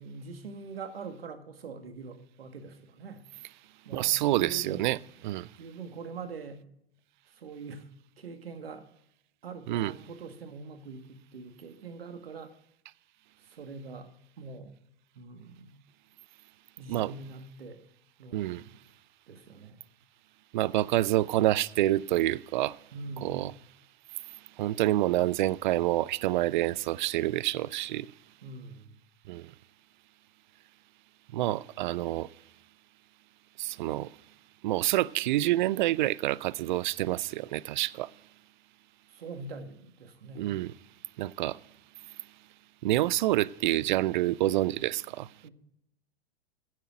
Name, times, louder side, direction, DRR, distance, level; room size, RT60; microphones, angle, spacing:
voice 1, 0.0-3.2 3.8-4.9 5.6-6.6 7.3-7.8 8.2-8.8 9.4-12.5 13.4-14.1 14.4-14.7 15.1-15.8 16.8-17.8 18.2-18.7 19.3-19.9 22.9-23.6 28.4-29.0 39.1-40.6 45.4-45.5, right 4 dB, 70° right, 1.8 m, -43 dB
voice 2, 3.9-5.0 5.2-5.5 9.7-9.9 16.9-17.1 18.3-18.6 20.5-22.8 23.2-23.5 24.6-28.1 29.3-29.5 31.3-32.3 33.6-34.1 34.6-38.1 40.4-40.7 41.2-41.6 42.8-45.3, right 15 dB, 50° right, 0.5 m, -27 dB
15.5 x 7.5 x 5.0 m
figure-of-eight pair, 95°, 31 cm